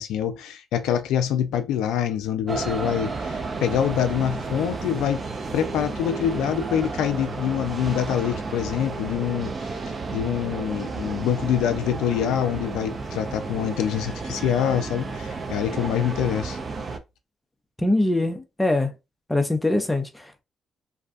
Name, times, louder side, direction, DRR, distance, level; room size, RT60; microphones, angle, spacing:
voice 1, 0.0-5.2 5.5-9.8 10.1-16.6, left 9 dB, 85° left, 0.3 m, -25 dB
sound 1, 2.5-17.0, right 4 dB, 40° right, 0.5 m, -32 dB
voice 2, 17.8-18.9 19.3-20.4, left 2 dB, 10° left, 0.5 m, -23 dB
2.5 x 2.3 x 2.4 m
cardioid pair, 80°, 0 cm